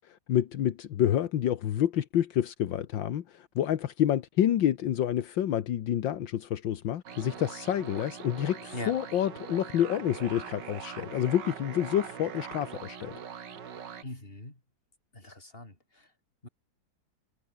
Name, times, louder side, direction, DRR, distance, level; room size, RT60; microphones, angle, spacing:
voice 1, 0.1-13.2, left 11 dB, 80° left, 1.8 m, -28 dB
sound 1, 7.1-14.0, right 7 dB, 70° right, 2.3 m, -42 dB
voice 2, 14.0-14.6 15.1-16.1 16.4-16.5, left 2 dB, 30° left, 5.6 m, -41 dB
omnidirectional pair, 2.0 m